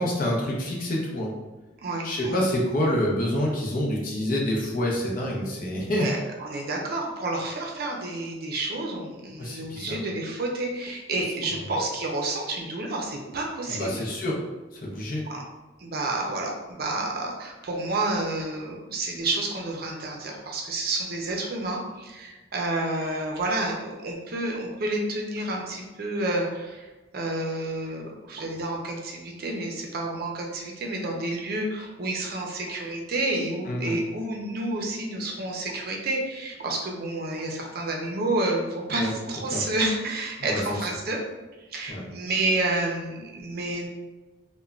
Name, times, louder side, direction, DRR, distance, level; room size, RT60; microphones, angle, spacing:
voice 1, 0.0-1.3 2.0-6.1 9.4-10.0 13.7-14.4 14.7-15.3 33.7-34.0 38.9-39.1 39.5-39.6 40.4-40.6 41.9-42.0, left 1 dB, 50° left, -2 dB, 0.6 m, -27 dB
voice 2, 1.8-2.4 5.9-13.9 15.1-15.4 15.8-26.9 27.1-41.2 41.7-43.9, right 2 dB, 55° right, 0 dB, 0.5 m, -30 dB
3.1 x 2.2 x 2.4 m, 1.2 s
head